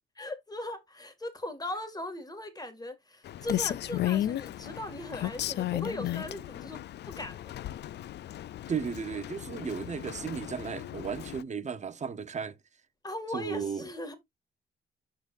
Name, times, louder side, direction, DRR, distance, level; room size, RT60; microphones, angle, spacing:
voice 1, 0.2-6.8 7.2-7.5 13.0-14.1, left 1 dB, 20° left, 2.2 m, -39 dB
Rain, 3.2-11.4, left 13 dB, 60° left, 0.4 m, -35 dB
voice 2, 8.7-12.6 13.3-13.9, right 6 dB, 35° right, 1.0 m, -35 dB
11.5 x 3.9 x 2.6 m
cardioid pair, 90°, 20 cm